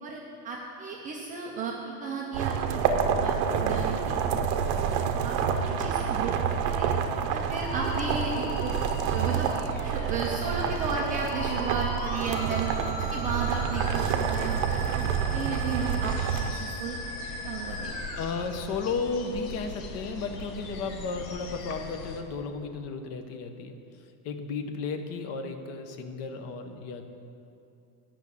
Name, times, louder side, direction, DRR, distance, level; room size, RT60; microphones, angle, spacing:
voice 1, 0.0-2.8 3.2-4.2 4.7-4.8 5.2-6.9 7.3-8.8 9.1-9.6 9.8-12.7 13.1-17.0 17.4-17.9, right 4 dB, 20° right, -3 dB, 0.3 m, -34 dB
sound 1, 2.3-16.5, right 7 dB, 55° right, 0.8 m, -28 dB
Musical instrument, 7.5-18.2, left 2 dB, 55° left, 2.1 m, -38 dB
sound 2, 16.0-22.2, left 3 dB, 80° left, 1.4 m, -41 dB
voice 2, 18.2-23.8 24.2-27.0, left 4 dB, 30° left, 6 dB, 0.7 m, -34 dB
10.5 x 6.0 x 8.2 m, 2.6 s
cardioid pair, 170°, 48 cm